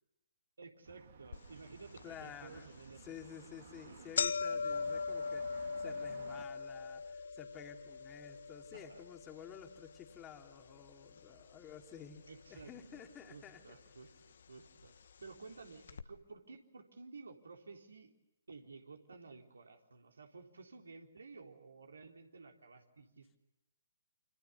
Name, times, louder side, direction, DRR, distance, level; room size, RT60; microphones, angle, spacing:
voice 1, 0.6-3.5 3.8-4.2 8.7-9.0 12.3-14.9 15.2-18.1 18.5-23.4, right 4 dB, 70° right, 4 dB, 3.9 m, -54 dB
sound 1, 0.8-6.4, right 6 dB, 55° right, 3.6 m, -56 dB
sound 2, 1.3-1.4 2.0-2.1 2.9-3.1 3.4-3.5 3.8-12.0 12.3-13.0 13.8-13.9 14.8-14.9 15.2-15.3 15.9-16.0, left 5 dB, 60° left, 1.5 m, -40 dB
voice 2, 2.0-2.7 3.0-12.2 12.5-13.6, left 9 dB, 20° left, 4 dB, 2.9 m, -52 dB
29.0 x 27.5 x 7.0 m, 0.92 s
figure-of-eight pair, 130°, 0 cm